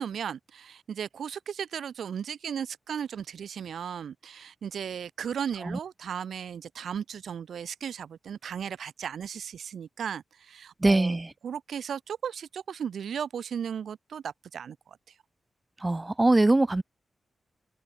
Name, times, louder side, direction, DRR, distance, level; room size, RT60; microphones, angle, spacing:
voice 1, 0.0-11.2 11.4-14.8, right 8 dB, 85° right, 4.6 m, -36 dB
voice 2, 10.8-11.3 15.8-16.8, right 2 dB, 15° right, 0.4 m, -22 dB
wide cardioid pair, 180°, 0 cm